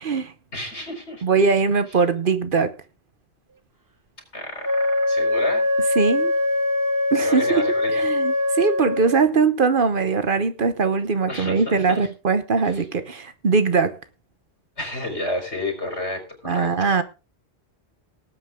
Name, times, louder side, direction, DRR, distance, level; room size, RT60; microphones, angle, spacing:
voice 1, 0.0-0.3 1.2-2.7 6.0-6.3 7.1-7.6 7.9-14.0 16.4-17.0, right 5 dB, 55° right, 1.1 m, -21 dB
voice 2, 0.5-1.4 4.3-5.6 7.2-8.0 11.3-12.1 12.6-12.8 14.8-16.9, left 1 dB, 80° left, 4.6 m, -31 dB
Wind instrument woodwind instrument, 4.6-9.3, left 2 dB, 20° right, 1.2 m, -22 dB
18.5 x 8.4 x 3.6 m
omnidirectional pair, 1.1 m